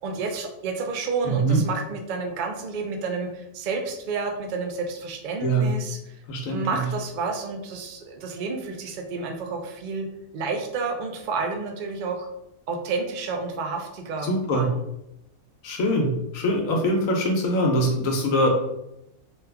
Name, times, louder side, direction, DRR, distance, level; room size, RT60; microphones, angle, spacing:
voice 1, 0.0-6.0 6.5-10.1 10.3-12.3 12.7-14.8, right 4 dB, 80° right, 3 dB, 0.4 m, -30 dB
voice 2, 1.2-1.6 5.4-5.7 6.3-6.8 14.2-14.7 15.6-18.5, right 1 dB, 75° left, 1 dB, 1.1 m, -23 dB
3.0 x 2.3 x 3.4 m, 0.85 s
omnidirectional pair, 1.4 m